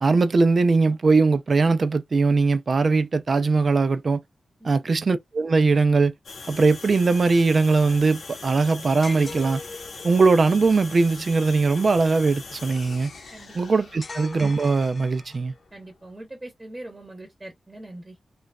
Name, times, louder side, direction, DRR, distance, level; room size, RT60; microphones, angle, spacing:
voice 1, 0.0-4.2 4.6-6.1 6.5-9.6 10.0-13.1 13.5-15.5, right 4 dB, 55° right, 0.4 m, -20 dB
sound 1, 6.2-16.1, left 4 dB, 75° left, 1.0 m, -41 dB
sound 2, 9.0-10.2 14.0-15.6, left 3 dB, 40° left, 0.5 m, -40 dB
voice 2, 15.7-18.2, right 1 dB, 25° right, 1.0 m, -41 dB
3.0 x 2.4 x 2.2 m
cardioid pair, 60°, 0 cm